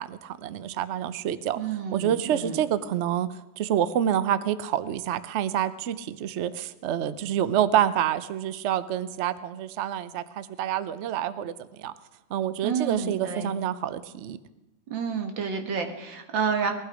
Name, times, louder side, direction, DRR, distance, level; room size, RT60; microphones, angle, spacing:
voice 1, 0.0-1.6 1.9-3.3 3.6-11.9 12.3-14.4, right 10 dB, 70° right, 14 dB, 0.6 m, -27 dB
voice 2, 1.6-2.6 12.6-13.5 14.9-16.7, right 6 dB, 85° right, 5 dB, 2.2 m, -29 dB
19.0 x 11.5 x 5.0 m, 1.0 s
omnidirectional pair, 2.0 m